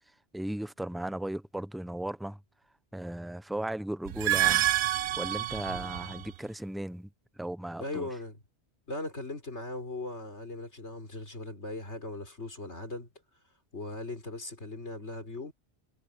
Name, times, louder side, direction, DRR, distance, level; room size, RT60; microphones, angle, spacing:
voice 1, 0.3-2.4 2.9-4.7 5.2-7.1 7.4-8.1, right 1 dB, ahead, 0.3 m, -36 dB
sound 1, 4.1-6.3, right 13 dB, 75° right, 0.8 m, -28 dB
voice 2, 7.8-8.4 8.9-13.1 13.7-15.5, left 2 dB, 80° left, 4.9 m, -39 dB
omnidirectional pair, 1.1 m